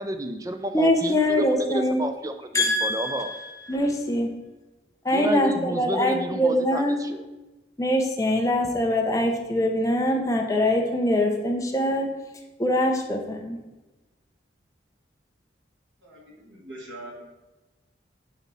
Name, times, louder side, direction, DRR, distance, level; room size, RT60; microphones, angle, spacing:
voice 1, 0.0-3.3 5.1-7.2, right 1 dB, 20° right, 8 dB, 0.4 m, -31 dB
voice 2, 0.7-2.0 2.5-4.4 5.0-7.0 7.8-12.1 12.6-13.6, left 1 dB, 15° left, 2 dB, 0.7 m, -23 dB
voice 3, 16.0-17.2, right 1 dB, 85° right, -4 dB, 2.2 m, -42 dB
9.1 x 3.1 x 4.0 m, 1.1 s
head